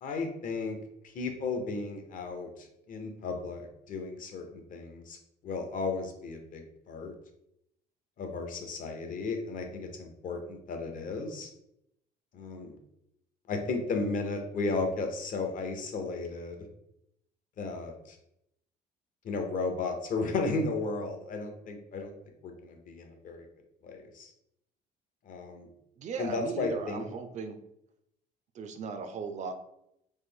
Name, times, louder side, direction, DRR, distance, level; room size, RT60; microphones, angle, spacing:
voice 1, 0.0-0.8 1.0-5.2 5.4-7.1 8.2-11.5 12.3-12.8 13.5-16.6 17.6-18.2 19.2-22.1 22.4-23.4 23.8-24.3 25.3-25.7 26.2-27.0, left 3 dB, 50° left, 4 dB, 0.7 m, -34 dB
voice 2, 26.0-27.6 28.5-29.5, right 5 dB, 45° right, 8 dB, 0.4 m, -37 dB
3.1 x 2.0 x 3.5 m, 0.78 s
cardioid pair, 110°, 17 cm